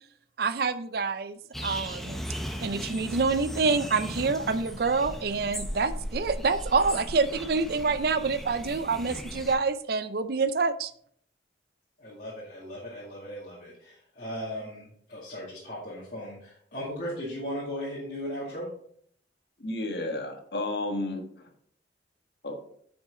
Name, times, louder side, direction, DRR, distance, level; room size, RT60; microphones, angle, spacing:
voice 1, 0.4-2.2 2.6-10.9, right 4 dB, 55° right, 13 dB, 0.5 m, -27 dB
sound 1, 1.5-9.5, equal, ahead, 0.7 m, -37 dB
voice 2, 12.0-18.7, equal, 45° left, -8 dB, 2.3 m, -37 dB
voice 3, 19.6-21.5 22.4-22.5, left 2 dB, 60° left, 4 dB, 1.4 m, -32 dB
9.4 x 6.1 x 3.7 m, 0.64 s
head